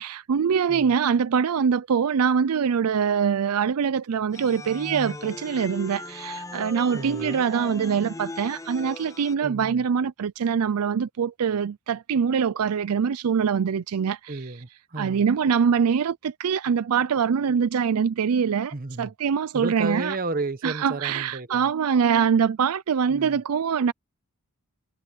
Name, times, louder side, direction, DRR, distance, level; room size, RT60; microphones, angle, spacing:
voice 1, 0.0-6.0 6.5-11.7 12.1-14.1 15.0-16.1 16.4-18.7 19.0-20.2 20.6-23.9, right 7 dB, 85° right, 0.4 m, -23 dB
sound 1, 4.3-9.3, left 2 dB, 15° left, 0.5 m, -38 dB
voice 2, 6.9-7.4 9.4-9.8 14.3-15.2 18.7-19.1 19.5-21.7 23.1-23.4, right 2 dB, 40° right, 1.1 m, -33 dB
head